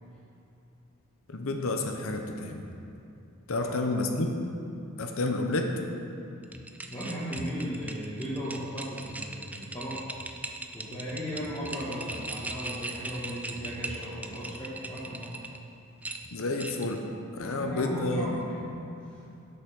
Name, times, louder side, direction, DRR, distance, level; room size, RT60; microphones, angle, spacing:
voice 1, 1.3-2.6 3.5-4.4 5.0-5.7 16.3-17.0 17.3-18.4, left 2 dB, 65° left, 4 dB, 0.8 m, -30 dB
voice 2, 3.5-4.1 6.8-10.0 10.7-15.3 17.4-18.8 19.1-19.2, equal, 20° left, -10 dB, 1.6 m, -36 dB
sound 1, 6.4-15.6 16.0-17.0, right 2 dB, 5° right, 0.4 m, -39 dB
8.2 x 6.5 x 6.1 m, 2.8 s
head